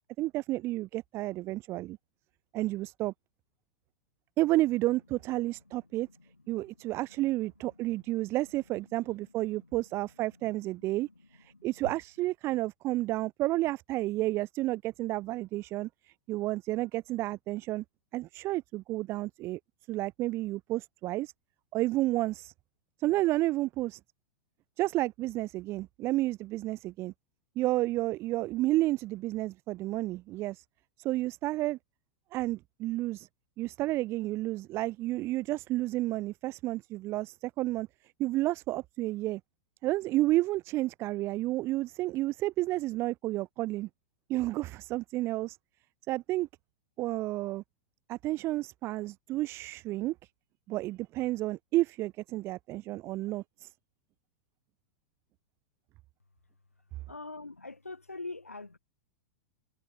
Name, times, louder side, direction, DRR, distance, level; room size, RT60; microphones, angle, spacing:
voice 1, 0.2-2.0 2.5-3.1 4.4-6.1 6.5-17.8 18.1-19.6 19.9-21.3 21.7-22.5 23.0-24.0 24.8-27.1 27.5-30.6 31.0-31.8 32.3-33.3 33.6-37.9 38.2-39.4 39.8-43.9 44.3-45.6 46.1-46.5 47.0-47.6 48.1-50.1 50.7-53.7, right 17 dB, 35° right, 1.6 m, -31 dB
voice 2, 57.1-58.8, left 3 dB, 85° left, 3.7 m, -43 dB
figure-of-eight pair, 95°, 7 cm